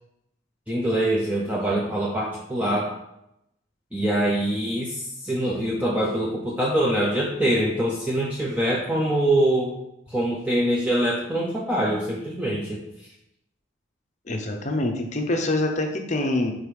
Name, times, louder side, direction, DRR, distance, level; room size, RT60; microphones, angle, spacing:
voice 1, 0.7-2.9 3.9-9.7 10.1-12.8, right 1 dB, 5° right, -4 dB, 0.6 m, -24 dB
voice 2, 14.3-16.5, left 2 dB, 35° left, 4 dB, 0.7 m, -25 dB
5.2 x 3.8 x 4.8 m, 0.83 s
head